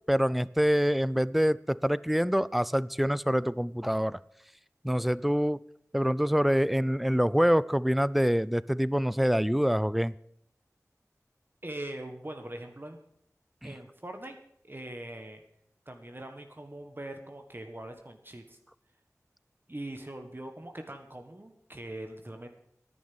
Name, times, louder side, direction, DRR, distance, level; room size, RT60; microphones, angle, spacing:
voice 1, 0.1-4.2 4.8-5.6 5.9-10.1 13.6-13.7, equal, ahead, 19 dB, 0.4 m, -26 dB
voice 2, 11.6-13.0 13.6-14.4 14.6-15.4 15.8-18.6 19.7-22.5, right 1 dB, 35° right, 5 dB, 1.6 m, -42 dB
10.5 x 9.6 x 7.9 m, 0.71 s
wide cardioid pair, 45°, 6 cm